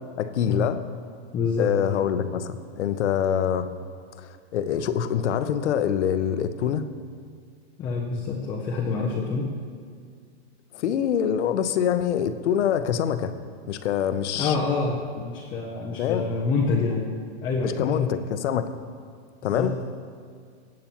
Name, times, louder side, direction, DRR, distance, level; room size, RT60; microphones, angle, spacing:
voice 1, 0.2-0.8 1.6-3.7 4.2-6.8 10.8-13.3 13.7-14.5 16.0-16.2 17.8-18.7 19.4-19.7, left 9 dB, 85° left, 11 dB, 0.7 m, -25 dB
voice 2, 1.3-1.7 7.8-9.5 14.3-17.1 17.4-18.1 19.4-19.9, left 4 dB, 15° left, -2 dB, 0.5 m, -27 dB
16.0 x 8.5 x 2.9 m, 2.1 s
supercardioid pair, 155°, 34 cm